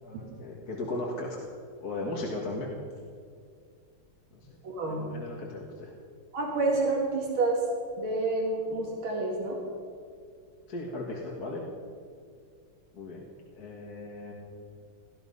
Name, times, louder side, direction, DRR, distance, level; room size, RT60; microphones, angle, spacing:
voice 1, 0.0-1.4 1.8-2.7 4.3-4.4 4.8-5.9 10.7-11.6 12.9-13.2 13.6-14.3, left 2 dB, 50° left, -1 dB, 2.1 m, -36 dB
voice 2, 4.6-5.1 6.3-7.6 8.0-9.6, right 2 dB, 85° right, -2 dB, 2.9 m, -28 dB
18.0 x 13.0 x 5.5 m, 2.2 s
omnidirectional pair, 2.2 m